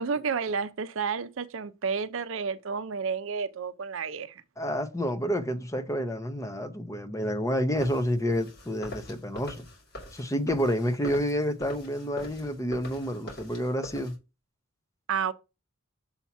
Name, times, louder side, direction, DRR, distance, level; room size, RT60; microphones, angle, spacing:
voice 1, 0.0-4.4 15.1-15.3, right 6 dB, 65° right, 0.5 m, -31 dB
voice 2, 4.6-9.6 10.1-14.2, equal, 15° left, 0.6 m, -29 dB
sound 1, 7.8-14.2, equal, 50° left, 2.5 m, -44 dB
7.0 x 2.9 x 5.7 m
head